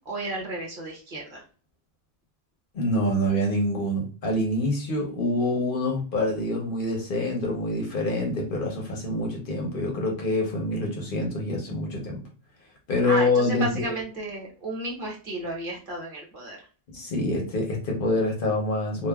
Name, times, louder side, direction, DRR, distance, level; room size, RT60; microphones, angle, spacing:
voice 1, 0.0-1.4 13.0-16.6, right 1 dB, 55° right, -1 dB, 1.0 m, -33 dB
voice 2, 2.7-12.2 12.9-13.9 16.9-19.1, left 1 dB, 55° left, 0 dB, 0.9 m, -26 dB
3.1 x 2.1 x 2.3 m, 0.37 s
omnidirectional pair, 1.1 m